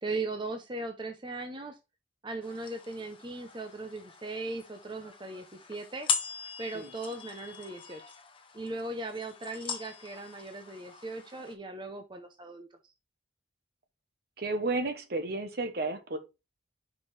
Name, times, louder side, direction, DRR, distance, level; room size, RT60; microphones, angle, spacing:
voice 1, 0.0-1.8 2.2-6.1 6.6-8.0 8.5-12.7, right 2 dB, 25° right, 0.7 m, -38 dB
sound 1, 2.4-11.5, left 6 dB, 30° left, 0.9 m, -40 dB
voice 2, 14.4-16.2, right 2 dB, 55° right, 1.1 m, -32 dB
5.4 x 5.2 x 4.1 m
head